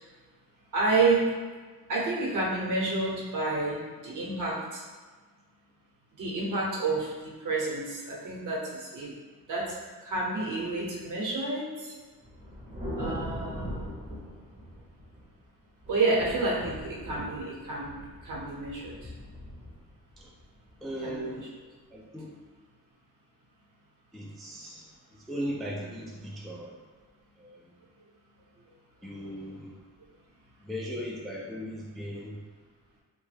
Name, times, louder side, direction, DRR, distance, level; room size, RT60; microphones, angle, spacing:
voice 1, 0.7-1.2 1.9-4.8 6.2-9.1 9.5-9.7 10.0-11.9 13.0-13.9 15.9-19.1 21.0-21.4, right 3 dB, 60° right, -5 dB, 0.9 m, -29 dB
Thunder, 12.2-15.3 15.8-21.1, equal, 25° right, 0.7 m, -40 dB
voice 2, 20.8-21.4 21.9-22.3 24.1-26.7 27.4-27.6 29.0-29.7 30.6-32.4, equal, ahead, -4 dB, 0.3 m, -37 dB
3.1 x 2.2 x 3.3 m, 1.4 s
cardioid pair, 140°, 35 cm